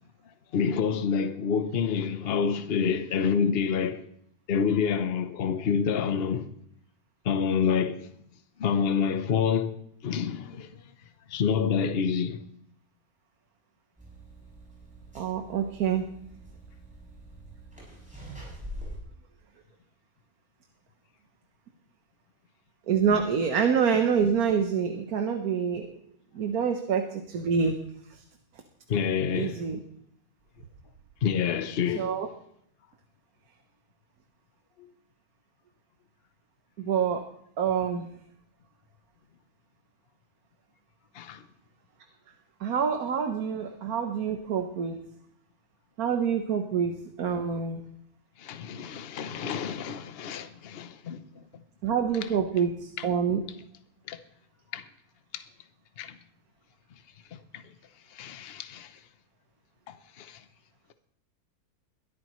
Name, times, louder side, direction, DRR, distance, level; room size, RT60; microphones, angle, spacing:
voice 1, 0.5-4.1 4.5-6.5 7.2-8.1 8.6-9.8 10.0-10.7 11.3-12.4 28.9-29.6 31.2-32.1 41.1-41.4 48.4-51.4 53.0-53.1 54.1-54.2 54.7-54.8 55.3-55.4 56.0-56.2 57.3-57.6 58.1-59.0 59.9-60.4, left 6 dB, 45° left, 1.0 m, -28 dB
sound 1, 14.0-19.0, equal, 5° right, 7.1 m, -44 dB
voice 2, 15.1-16.0 22.9-25.9 26.3-27.8 28.1-28.2 29.3-29.8 31.9-32.3 36.8-37.2 37.6-38.1 42.6-45.1 46.0-47.8 51.8-53.4, right 7 dB, 75° right, 1.5 m, -26 dB
22.5 x 13.5 x 3.1 m
omnidirectional pair, 1.6 m